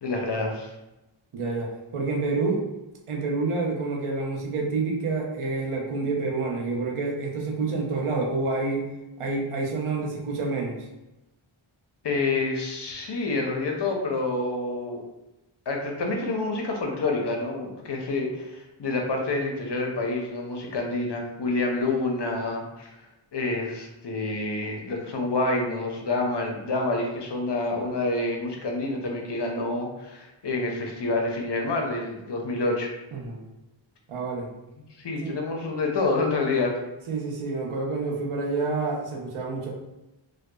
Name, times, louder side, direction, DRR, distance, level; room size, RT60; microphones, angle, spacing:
voice 1, 0.0-0.7 12.0-15.0 15.7-23.0 23.3-32.9 35.0-36.8, left 2 dB, 55° left, 1 dB, 0.6 m, -28 dB
voice 2, 1.3-2.6 3.1-8.8 9.2-10.8 33.1-33.4 34.1-34.5 35.2-35.3 37.1-39.7, right 3 dB, 85° right, -1 dB, 0.6 m, -28 dB
2.7 x 2.1 x 2.2 m, 0.97 s
wide cardioid pair, 45°, 49 cm